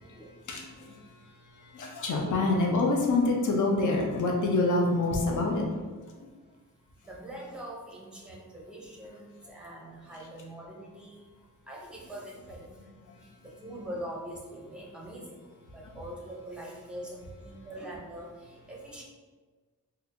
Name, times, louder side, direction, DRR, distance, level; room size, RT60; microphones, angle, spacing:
voice 1, 0.5-5.6 6.2-6.3 13.6-13.8 15.8-15.9, left 2 dB, 60° left, 0 dB, 0.6 m, -27 dB
voice 2, 7.0-11.2 11.7-12.8 13.4-19.0, right 1 dB, 5° right, -3 dB, 0.6 m, -43 dB
4.2 x 2.6 x 2.6 m, 1.4 s
wide cardioid pair, 170°, 34 cm